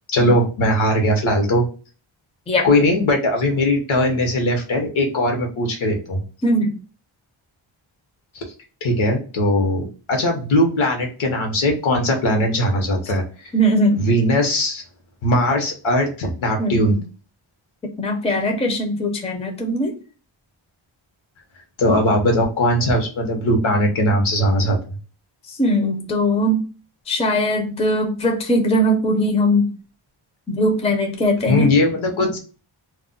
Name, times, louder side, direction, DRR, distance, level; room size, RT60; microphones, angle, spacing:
voice 1, 0.1-1.6 2.6-6.2 8.3-8.4 8.8-13.5 14.0-14.8 15.2-17.0 21.8-24.8 31.5-32.4, left 1 dB, 75° left, 3 dB, 0.9 m, -19 dB
voice 2, 6.4-6.7 13.5-14.1 16.6-17.0 17.8-19.9 25.5-26.6 27.1-29.7 30.5-31.7, equal, 15° left, 3 dB, 0.4 m, -20 dB
2.4 x 2.1 x 3.8 m, 0.37 s
wide cardioid pair, 135°, 49 cm